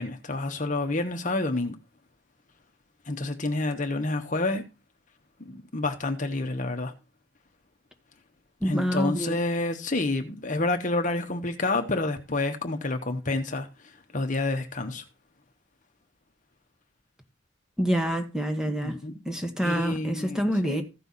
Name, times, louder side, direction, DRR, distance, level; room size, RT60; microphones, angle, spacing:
voice 1, 0.0-1.7 3.1-4.6 5.4-6.9 8.6-13.7 14.1-15.0 18.7-19.2 19.6-20.8, left 2 dB, 40° left, 1.1 m, -29 dB
voice 2, 8.6-9.4 17.8-19.0 19.3-20.8, equal, 5° right, 1.4 m, -27 dB
15.0 x 5.6 x 4.1 m
head